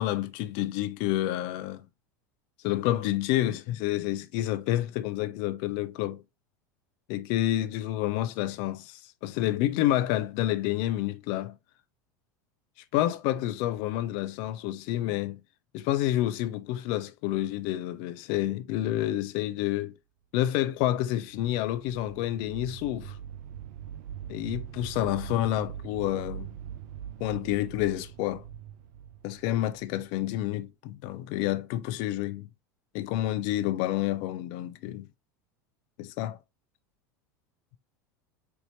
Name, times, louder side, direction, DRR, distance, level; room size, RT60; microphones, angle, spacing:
voice 1, 0.0-1.8 2.6-6.2 7.1-11.6 12.9-15.4 15.7-19.9 20.3-23.2 24.3-26.6 27.2-28.4 29.2-32.5 32.9-35.1 36.0-36.4, left 14 dB, 55° left, 0.5 m, -29 dB
sound 1, 20.8-30.4, right 9 dB, 65° right, 0.5 m, -42 dB
4.5 x 2.6 x 3.2 m
hypercardioid pair, 85°, 10 cm